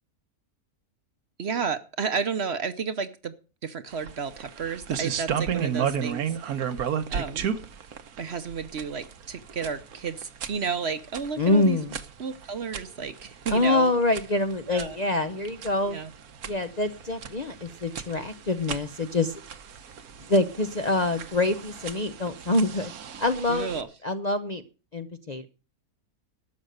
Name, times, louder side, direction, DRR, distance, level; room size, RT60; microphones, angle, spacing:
voice 1, 1.4-3.3 3.6-6.7 7.1-7.5 8.2-11.8 12.2-13.9 14.7-15.0 15.8-16.1 23.5-23.9, right 5 dB, 50° right, 11 dB, 1.0 m, -32 dB
sound 1, 3.9-23.8, right 8 dB, 75° right, 1.5 m, -35 dB
voice 2, 11.4-12.0 13.5-16.0 16.5-19.3 20.3-22.9 23.2-23.7 24.0-24.6 24.9-25.5, left 2 dB, 40° left, 7 dB, 0.6 m, -25 dB
12.5 x 7.9 x 6.6 m, 0.35 s
omnidirectional pair, 1.6 m